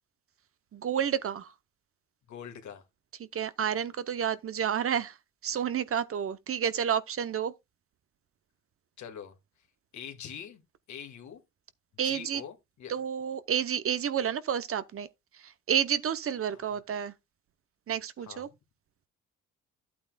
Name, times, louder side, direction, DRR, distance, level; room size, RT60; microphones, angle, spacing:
voice 1, 0.7-1.5 3.2-5.2 5.4-7.5 12.0-12.4 12.9-15.1 15.4-17.1 17.9-18.5, right 8 dB, 50° right, 0.8 m, -30 dB
voice 2, 2.3-2.8 9.0-9.4 9.9-10.6 10.9-11.4 12.0-12.9 16.5-16.8 18.2-18.5, left 8 dB, 70° left, 2.1 m, -44 dB
11.5 x 8.6 x 2.3 m
cardioid pair, 90°, 30 cm